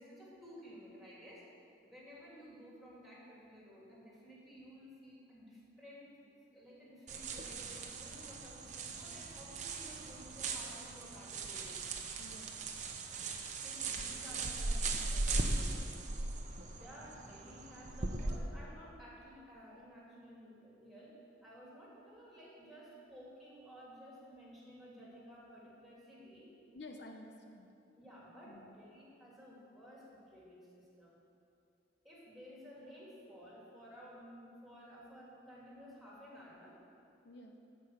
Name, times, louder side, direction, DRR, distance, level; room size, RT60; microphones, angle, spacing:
voice 1, 0.0-1.4 1.8-11.8 13.6-16.3 16.7-26.5 28.0-31.2 32.0-36.8, equal, ahead, -6 dB, 2.7 m, -54 dB
sound 1, 7.1-18.4, right 3 dB, 40° right, 0.9 m, -39 dB
voice 2, 12.2-12.8 26.7-27.7 28.5-28.8 37.2-37.6, left 2 dB, 65° left, 3 dB, 0.8 m, -52 dB
13.0 x 5.5 x 7.9 m, 2.6 s
head